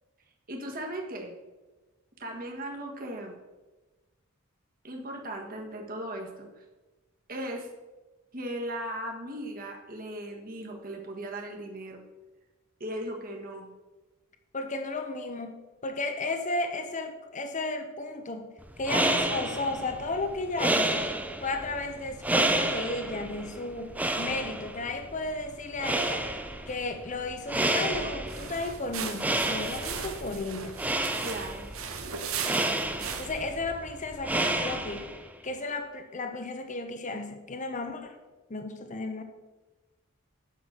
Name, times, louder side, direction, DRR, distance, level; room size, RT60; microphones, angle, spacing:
voice 1, 0.5-1.3 2.2-3.4 4.8-6.5 7.3-7.7 8.3-12.0 12.8-13.7 31.2-31.7, right 1 dB, 45° right, 1 dB, 1.6 m, -37 dB
voice 2, 14.5-15.5 15.8-21.1 21.4-26.3 26.7-30.7 33.2-35.1 35.4-38.2 38.5-39.2, left 2 dB, 35° left, 6 dB, 0.8 m, -34 dB
sound 1, 18.7-35.3, right 1 dB, 5° right, 0.5 m, -31 dB
sound 2, 28.2-33.5, right 6 dB, 80° right, 1.1 m, -37 dB
9.2 x 6.0 x 6.5 m, 1.2 s
head